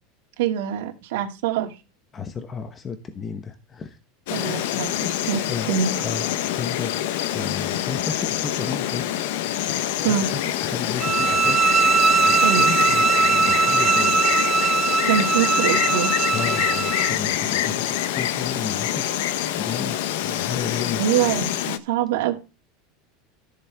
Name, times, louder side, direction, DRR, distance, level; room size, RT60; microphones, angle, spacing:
voice 1, 0.4-1.7 4.3-5.9 10.0-10.3 12.4-12.7 15.0-16.1 21.0-22.4, right 9 dB, 75° right, 2 dB, 2.3 m, -24 dB
voice 2, 2.1-4.0 4.5-4.7 5.5-6.2 6.6-9.0 10.0-11.6 12.2-14.1 16.3-19.2 19.5-21.3, left 6 dB, 20° left, 9 dB, 1.1 m, -33 dB
Insect, 4.3-21.8, left 12 dB, 70° left, 1.1 m, -26 dB
sound 1, 11.0-17.1, right 5 dB, 15° right, 0.6 m, -20 dB
13.5 x 8.1 x 3.5 m, 0.29 s
supercardioid pair, 170°, 0 cm